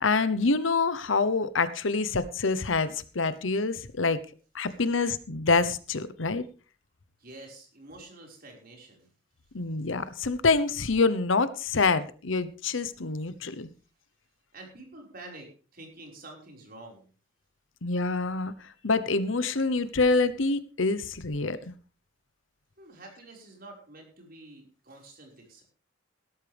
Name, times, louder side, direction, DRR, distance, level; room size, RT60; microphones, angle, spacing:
voice 1, 0.0-4.2 4.5-6.4 9.5-13.7 17.8-21.7, left 3 dB, 85° left, 15 dB, 1.0 m, -26 dB
voice 2, 7.2-9.1 14.5-17.1 22.8-25.6, right 2 dB, 50° right, 1 dB, 5.2 m, -48 dB
17.0 x 13.0 x 3.5 m, 0.37 s
head